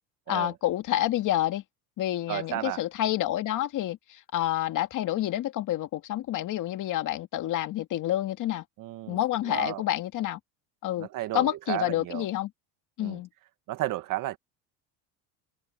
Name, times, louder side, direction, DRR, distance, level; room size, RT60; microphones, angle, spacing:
voice 1, 0.3-1.6 2.0-8.6 9.1-10.4 10.8-11.1 11.3-12.5 13.0-13.3, left 13 dB, 45° left, 2.2 m, -28 dB
voice 2, 2.3-2.8 8.8-9.2 9.5-9.8 11.0-12.2 13.0-13.2 13.7-14.4, right 15 dB, 45° right, 1.7 m, -33 dB
supercardioid pair, 130°, 43 cm